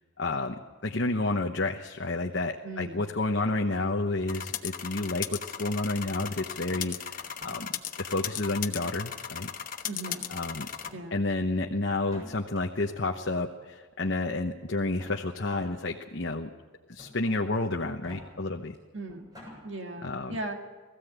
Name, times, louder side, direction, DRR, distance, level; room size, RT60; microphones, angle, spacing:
voice 1, 0.2-7.7 8.0-9.5 10.3-10.7 11.1-16.5 16.9-18.7 20.0-20.4, left 2 dB, 60° left, 2 dB, 1.0 m, -30 dB
voice 2, 2.6-3.0 9.9-10.2 10.9-11.2 18.9-19.2 19.6-20.6, right 2 dB, 65° right, 4 dB, 1.9 m, -37 dB
sound 1, 4.3-10.9, left 8 dB, 40° left, 1.1 m, -37 dB
sound 2, 6.7-7.6 8.1-8.7 9.1-9.7 10.0-10.2 10.7-11.0 12.0-12.6 13.6-13.7 14.8-15.8 16.2-16.3 17.0-17.3 17.9-18.2 18.7-18.8 19.1-19.6, equal, 20° right, 7.2 m, -48 dB
20.5 x 15.5 x 8.2 m, 1.4 s
head